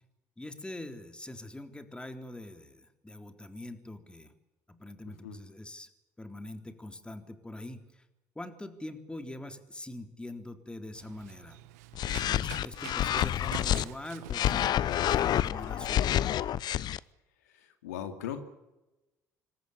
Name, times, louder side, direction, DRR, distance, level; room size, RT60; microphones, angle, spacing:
voice 1, 0.4-4.3 4.7-5.9 6.2-7.8 8.4-11.6 12.3-16.4, left 1 dB, 10° left, 7 dB, 3.8 m, -43 dB
Run, 10.9-16.5, right 17 dB, 80° right, 1.1 m, -48 dB
sound 1, 11.9-13.8 14.3-17.0, left 11 dB, 55° left, 0.8 m, -28 dB
voice 2, 17.5-18.4, left 9 dB, 85° left, 7 dB, 2.6 m, -38 dB
27.0 x 14.0 x 10.0 m, 0.99 s
hypercardioid pair, 60°, 9 cm